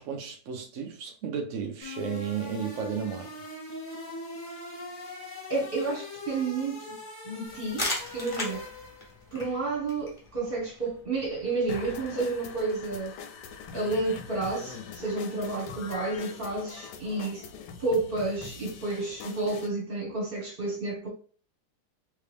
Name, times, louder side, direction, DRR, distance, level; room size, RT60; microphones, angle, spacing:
voice 1, 0.0-3.3, right 7 dB, 75° right, 0.7 m, -33 dB
sound 1, 1.8-9.2, left 3 dB, 45° left, 1.0 m, -41 dB
voice 2, 5.5-7.0 7.2-8.6 9.3-13.1 13.7-17.5 17.8-21.1, right 3 dB, 35° right, 1.1 m, -31 dB
sound 2, 7.5-13.0, left 1 dB, 25° left, 0.7 m, -39 dB
sound 3, 11.7-19.7, left 6 dB, 70° left, 1.1 m, -43 dB
3.3 x 2.8 x 3.3 m
omnidirectional pair, 2.1 m